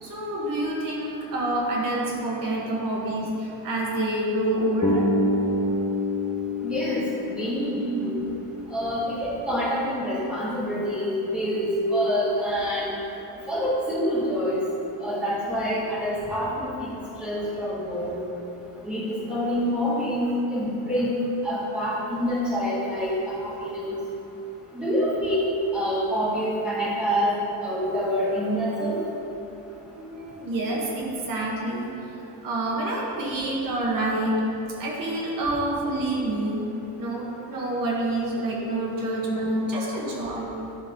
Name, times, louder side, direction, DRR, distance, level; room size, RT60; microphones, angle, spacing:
voice 1, 0.0-5.1 30.0-34.4 34.8-36.7 37.0-40.5, right 1 dB, 60° right, -3 dB, 1.5 m, -27 dB
Bass guitar, 4.8-8.9, left 2 dB, 15° left, 0.9 m, -27 dB
voice 2, 6.6-8.1 8.7-12.9 13.5-14.6 15.0-16.9 17.2-18.2 18.8-23.8 24.7-25.5 25.7-29.0, equal, 5° right, -13 dB, 2.0 m, -26 dB
12.0 x 4.0 x 5.2 m, 2.9 s
cardioid pair, 175°, 37 cm